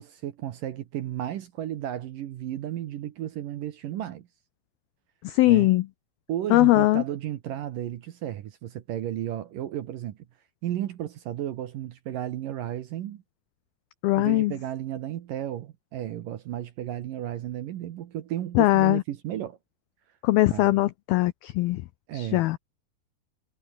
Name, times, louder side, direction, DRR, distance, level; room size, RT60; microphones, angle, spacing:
voice 1, 0.0-4.3 5.5-5.7 6.3-10.2 10.6-13.2 14.2-19.6 20.5-20.7 22.1-22.4, right 12 dB, 65° right, 2.3 m, -33 dB
voice 2, 5.2-5.9 6.5-7.0 14.0-14.5 18.6-19.0 20.2-21.8 22.1-22.6, left 18 dB, 85° left, 2.1 m, -21 dB
omnidirectional pair, 5.2 m